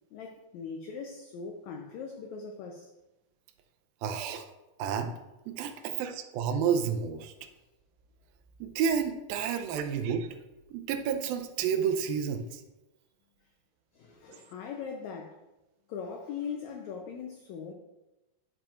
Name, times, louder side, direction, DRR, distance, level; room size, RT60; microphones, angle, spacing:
voice 1, 0.1-2.9 5.7-5.9 13.9-15.4 15.9-17.7, left 6 dB, 90° left, 3 dB, 1.6 m, -40 dB
voice 2, 4.0-4.5 4.8-5.1 5.5-7.3 8.6-10.3 10.7-12.6 14.3-14.4, right 7 dB, 85° right, 8 dB, 2.5 m, -30 dB
9.8 x 7.4 x 2.5 m, 1.0 s
omnidirectional pair, 4.1 m